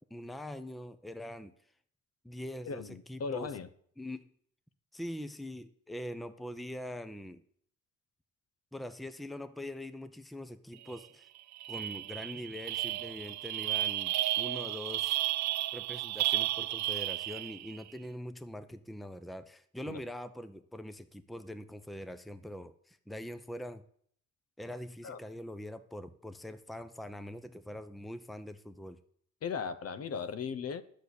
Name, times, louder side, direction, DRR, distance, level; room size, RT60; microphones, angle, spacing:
voice 1, 0.1-1.5 2.2-3.5 4.0-4.3 4.9-7.4 8.7-11.3 11.7-15.2 15.7-23.8 24.6-29.0, left 1 dB, ahead, 0.7 m, -43 dB
voice 2, 2.6-3.7 19.9-20.0 25.0-25.2 29.4-30.8, left 6 dB, 55° left, 1.0 m, -37 dB
sound 1, 10.9-11.1 11.4-17.8, right 15 dB, 65° right, 0.5 m, -33 dB
10.5 x 6.5 x 8.2 m
cardioid pair, 90°, 30 cm